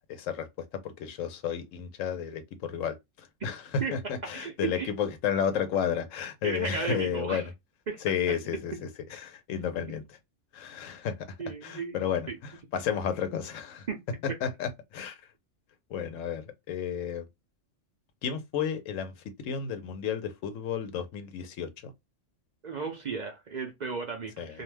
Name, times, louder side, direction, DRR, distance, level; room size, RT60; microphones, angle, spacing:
voice 1, 0.1-7.5 8.0-10.2 10.5-11.4 11.6-13.9 14.2-15.3 15.9-17.3 18.2-21.9 24.4-24.6, left 7 dB, 90° left, 1.0 m, -32 dB
voice 2, 4.3-4.9 6.4-7.4 7.9-8.0 8.3-8.4 8.7-8.8 11.4-12.0 12.3-12.4 13.9-14.0 22.6-24.6, right 5 dB, 50° right, 0.5 m, -34 dB
2.5 x 2.1 x 3.2 m
omnidirectional pair, 1.3 m